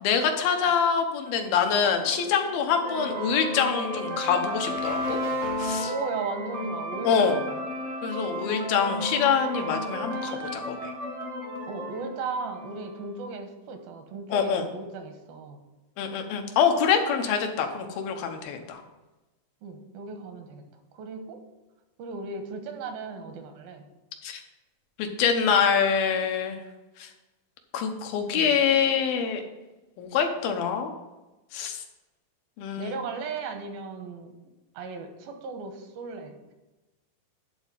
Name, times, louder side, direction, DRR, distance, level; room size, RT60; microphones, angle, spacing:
voice 1, 0.0-5.2 5.6-5.9 7.0-7.3 8.0-10.9 14.3-14.7 16.0-18.8 24.2-24.4 25.0-26.6 27.0-27.1 27.7-29.4 30.0-30.9 31.5-31.8 32.6-32.9, left 7 dB, 90° left, 4 dB, 2.9 m, -25 dB
sound 1, 1.3-13.0, equal, 55° right, 0.7 m, -33 dB
voice 2, 5.8-7.6 11.7-15.6 19.6-20.6 20.9-21.4 22.0-23.8 28.3-28.6 32.8-34.3 34.7-36.3, right 4 dB, 85° right, 5 dB, 3.0 m, -36 dB
11.0 x 4.1 x 7.4 m, 1.1 s
omnidirectional pair, 4.1 m